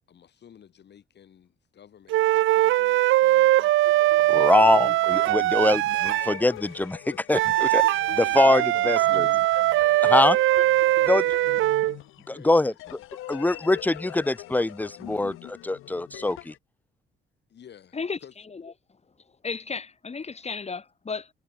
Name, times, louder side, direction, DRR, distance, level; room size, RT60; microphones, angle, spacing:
voice 1, 0.1-4.5 8.2-9.3 10.9-11.6 12.3-13.1 13.5-13.6 17.5-18.3, left 9 dB, 60° left, 7.0 m, -50 dB
sound 1, 2.1-6.4 7.3-12.0, right 15 dB, 80° right, 0.8 m, -21 dB
sound 2, 3.8-16.6, left 15 dB, 90° left, 7.6 m, -43 dB
voice 2, 4.3-7.8 8.1-9.3 10.0-10.4 11.1-11.2 12.3-12.7 13.3-16.5, left 2 dB, 10° left, 0.6 m, -23 dB
voice 3, 19.4-21.3, left 4 dB, 30° left, 6.3 m, -33 dB
cardioid pair, 90°, 20 cm